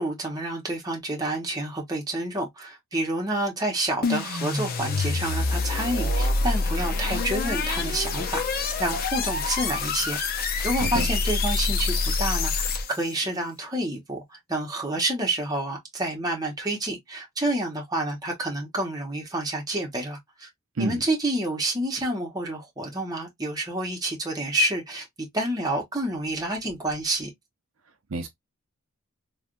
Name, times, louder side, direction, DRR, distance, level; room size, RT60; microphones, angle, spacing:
voice 1, 0.0-20.5 20.8-27.3, right 1 dB, 15° right, 1.0 m, -29 dB
sound 1, 4.0-13.1, left 3 dB, 45° left, 0.6 m, -26 dB
voice 2, 10.8-11.1 20.8-21.0 28.1-28.3, right 2 dB, 70° right, 0.6 m, -28 dB
3.3 x 2.3 x 2.5 m
head